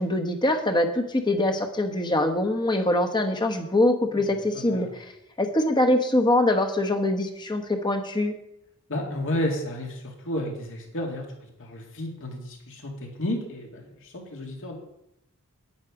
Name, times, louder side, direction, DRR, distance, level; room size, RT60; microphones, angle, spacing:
voice 1, 0.0-5.0 5.4-8.3, left 1 dB, 20° left, 5 dB, 1.1 m, -23 dB
voice 2, 4.5-4.9 8.9-11.3 11.6-12.9 13.2-14.8, left 1 dB, 60° left, 1 dB, 2.3 m, -32 dB
9.8 x 9.8 x 4.9 m, 0.81 s
head